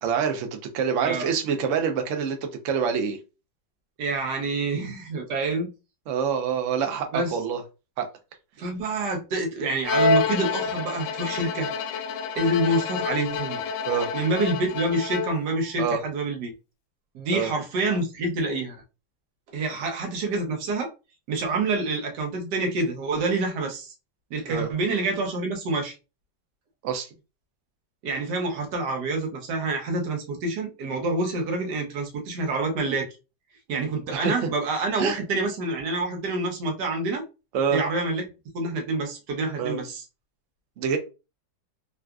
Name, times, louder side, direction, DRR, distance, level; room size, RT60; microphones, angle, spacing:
voice 1, 0.0-3.2 6.1-7.6 8.0-8.1 13.9-14.1 15.8-16.0 17.3-17.5 24.5-24.7 26.8-27.1 34.1-34.3 35.0-35.2 37.5-37.8 39.6-39.8 40.8-41.0, right 6 dB, 85° right, 0.6 m, -26 dB
voice 2, 4.0-5.7 7.1-7.4 8.6-11.7 12.4-13.6 14.1-16.5 17.1-18.8 19.5-20.9 21.3-23.9 24.3-25.9 28.0-33.1 33.7-37.2 37.7-38.3 38.5-40.0, right 2 dB, 65° right, 1.3 m, -27 dB
Bowed string instrument, 9.8-15.6, left 4 dB, 85° left, 1.3 m, -28 dB
3.7 x 2.3 x 2.3 m
omnidirectional pair, 2.1 m